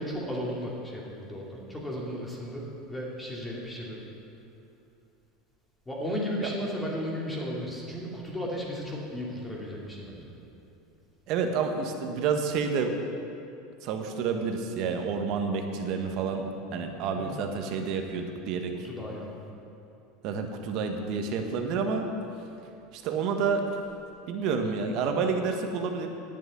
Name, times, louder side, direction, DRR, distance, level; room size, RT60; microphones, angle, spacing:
voice 1, 0.0-4.0 5.9-10.2 17.2-17.4 18.8-19.3, equal, 10° left, -3 dB, 2.5 m, -35 dB
voice 2, 11.3-12.9 13.8-16.4 16.7-18.7 20.2-22.1 22.9-23.6 24.3-26.1, right 5 dB, 55° right, 4 dB, 1.3 m, -29 dB
10.5 x 6.9 x 9.3 m, 2.7 s
supercardioid pair, 140°, 0 cm